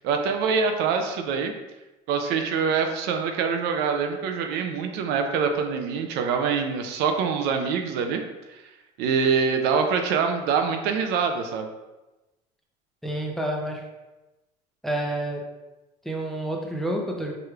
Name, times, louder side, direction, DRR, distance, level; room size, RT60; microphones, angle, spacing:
voice 1, 0.0-1.5 2.1-8.2 8.5-8.6 9.0-11.7, right 5 dB, 70° right, 5 dB, 0.5 m, -25 dB
voice 2, 13.0-13.9 14.8-15.4 16.0-17.3, right 1 dB, ahead, 0 dB, 0.6 m, -29 dB
4.7 x 3.1 x 2.4 m, 1.0 s
supercardioid pair, 110°, 18 cm